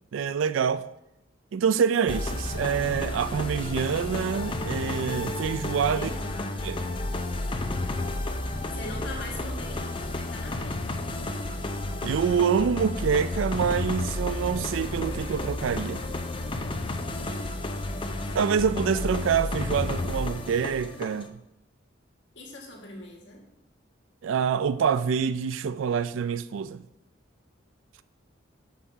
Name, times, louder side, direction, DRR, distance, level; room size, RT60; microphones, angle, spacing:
voice 1, 0.1-0.8 1.5-6.1 6.6-6.8 12.0-16.0 18.3-21.3 24.2-26.8, right 7 dB, 85° right, 0.4 m, -26 dB
sound 1, 2.1-21.3, left 2 dB, 25° left, 0.5 m, -32 dB
voice 2, 5.9-6.8 8.7-11.0 17.2-18.4 22.4-23.4, left 1 dB, 65° left, 1.8 m, -42 dB
6.4 x 5.6 x 5.6 m
head